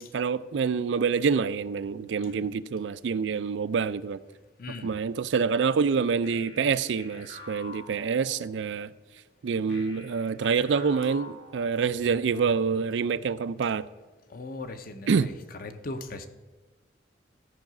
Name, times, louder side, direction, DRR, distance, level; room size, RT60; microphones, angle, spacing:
voice 1, 0.0-4.2 4.8-8.9 9.4-13.8 15.1-15.3, right 5 dB, 90° right, 0.4 m, -26 dB
voice 2, 2.2-2.5 4.6-5.0 14.3-16.3, left 2 dB, 55° left, 0.7 m, -39 dB
sound 1, 6.2-8.7 9.7-12.2, left 2 dB, 75° left, 2.5 m, -47 dB
13.0 x 4.8 x 6.0 m
head